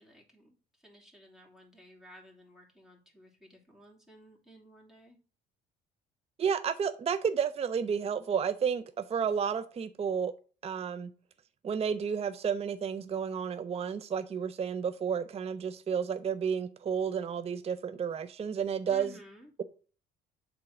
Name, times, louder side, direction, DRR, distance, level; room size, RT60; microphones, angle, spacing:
voice 1, 0.0-5.2 18.9-19.5, right 1 dB, ahead, 3.0 m, -55 dB
voice 2, 6.4-10.3 10.6-11.1 11.6-19.1, right 7 dB, 30° right, 0.5 m, -31 dB
7.5 x 3.7 x 6.0 m
supercardioid pair, 65°, 20 cm